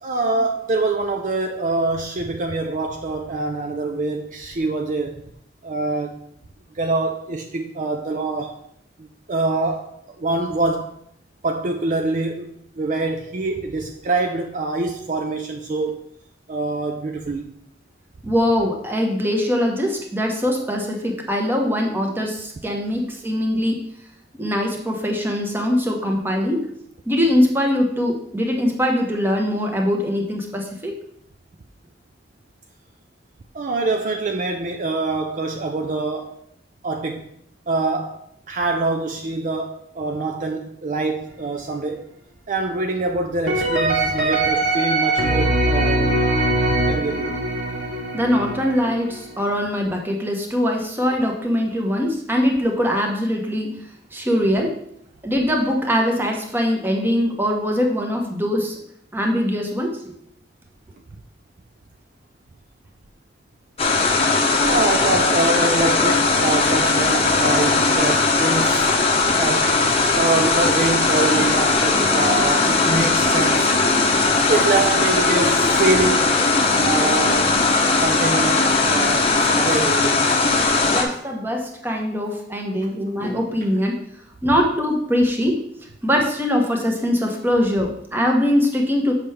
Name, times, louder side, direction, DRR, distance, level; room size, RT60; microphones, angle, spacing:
voice 1, 0.0-5.2 5.6-6.2 6.7-8.6 9.0-9.9 10.2-10.9 11.4-12.5 12.8-16.0 16.5-17.5 18.3-18.4 33.5-36.3 36.8-37.2 37.7-38.2 38.5-42.1 42.5-46.4 46.7-47.3 64.6-68.9 69.3-69.7 70.1-73.7 74.5-76.3 76.7-77.5 78.0-80.2, right 3 dB, 45° right, 4 dB, 0.4 m, -24 dB
voice 2, 18.2-23.8 24.4-26.7 27.0-30.9 48.1-53.7 54.1-54.7 55.2-58.7 59.1-60.0 80.9-84.0 84.4-85.6 86.0-89.1, equal, 10° right, 1 dB, 1.0 m, -22 dB
sound 1, 43.5-49.4, right 2 dB, 65° right, 1.3 m, -21 dB
sound 2, 63.8-81.0, left 3 dB, 35° left, 0.8 m, -19 dB
sound 3, 71.0-79.9, left 1 dB, 10° left, 1.1 m, -30 dB
7.1 x 5.7 x 3.3 m, 0.71 s
head